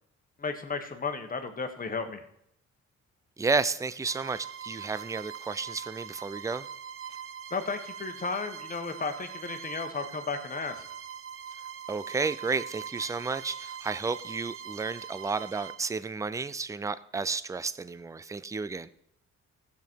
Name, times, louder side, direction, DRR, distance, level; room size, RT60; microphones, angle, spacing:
voice 1, 0.4-2.2 7.5-10.8, left 4 dB, 30° left, 7 dB, 1.4 m, -34 dB
voice 2, 3.4-6.7 11.9-18.9, right 4 dB, 10° right, 16 dB, 0.4 m, -32 dB
Bowed string instrument, 4.0-15.9, right 8 dB, 45° right, 0.8 m, -42 dB
15.0 x 7.1 x 4.6 m, 0.75 s
cardioid pair, 90°, 30 cm